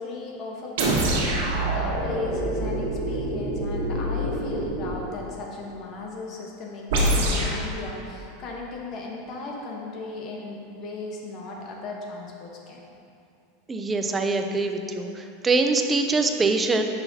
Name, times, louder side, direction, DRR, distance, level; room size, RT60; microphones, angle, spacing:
voice 1, 0.0-12.9, left 3 dB, 30° left, -1 dB, 1.0 m, -36 dB
sound 1, 0.8-5.1 6.9-7.6, right 1 dB, 75° right, 1.5 m, -25 dB
voice 2, 13.7-16.8, right 3 dB, 10° right, 5 dB, 0.4 m, -24 dB
9.7 x 5.8 x 2.7 m, 2.6 s
supercardioid pair, 170°, 0 cm